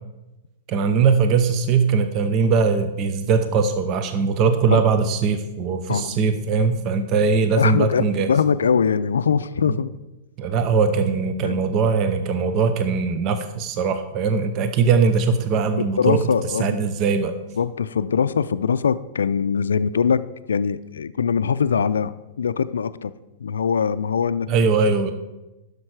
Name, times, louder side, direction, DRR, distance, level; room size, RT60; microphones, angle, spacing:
voice 1, 0.7-8.3 9.7-9.8 10.4-16.2 16.6-17.3 24.5-25.1, right 5 dB, 40° right, 9 dB, 0.8 m, -20 dB
voice 2, 7.6-9.9 11.4-11.6 15.8-16.8 17.6-23.1 23.4-24.5, left 6 dB, 80° left, 14 dB, 0.4 m, -22 dB
11.0 x 6.7 x 4.8 m, 1.0 s
hypercardioid pair, 110°, 0 cm